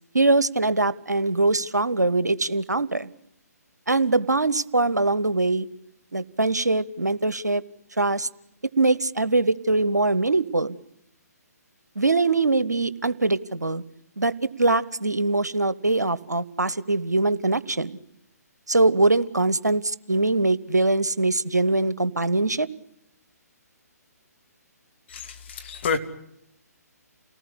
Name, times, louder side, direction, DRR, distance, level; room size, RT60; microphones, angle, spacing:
voice 1, 0.1-3.1 3.9-5.7 6.1-7.6 8.0-8.3 8.8-10.8 12.0-13.8 14.2-18.0 18.7-22.7, right 2 dB, 80° right, 18 dB, 1.1 m, -22 dB
voice 2, 25.1-26.0, left 5 dB, 40° left, 5 dB, 2.8 m, -28 dB
29.0 x 19.0 x 9.7 m, 0.77 s
figure-of-eight pair, 135°, 9 cm